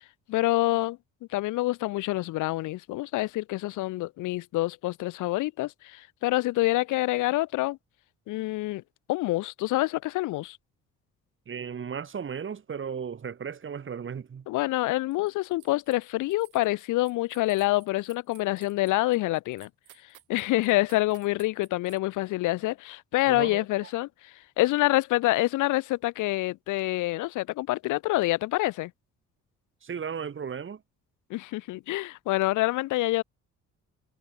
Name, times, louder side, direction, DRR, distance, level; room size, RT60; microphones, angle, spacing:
voice 1, 0.3-1.0 1.3-7.8 8.3-8.8 9.1-10.6 14.5-19.7 20.3-28.9 31.3-33.2, left 18 dB, 90° left, 0.8 m, -27 dB
voice 2, 11.5-14.5 23.3-23.9 29.8-30.8, right 7 dB, 40° right, 2.2 m, -35 dB
sound 1, 15.1-16.0 16.3-22.0, right 15 dB, 90° right, 6.4 m, -56 dB
cardioid pair, 90°, 30 cm